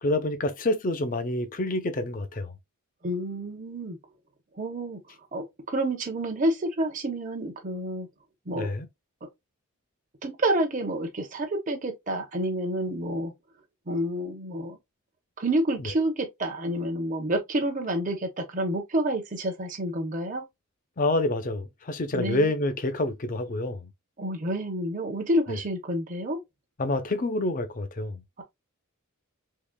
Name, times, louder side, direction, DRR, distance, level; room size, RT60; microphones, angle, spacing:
voice 1, 0.0-2.5 8.5-8.9 15.8-15.9 21.0-23.9 25.5-25.6 26.8-28.2, left 2 dB, 40° left, 0.6 m, -27 dB
voice 2, 3.0-4.0 4.6-5.0 5.3-8.1 8.5-8.7 10.2-13.3 13.9-14.8 15.4-20.4 22.1-22.5 24.2-26.4, right 1 dB, 35° right, 0.7 m, -29 dB
3.7 x 3.4 x 2.2 m
head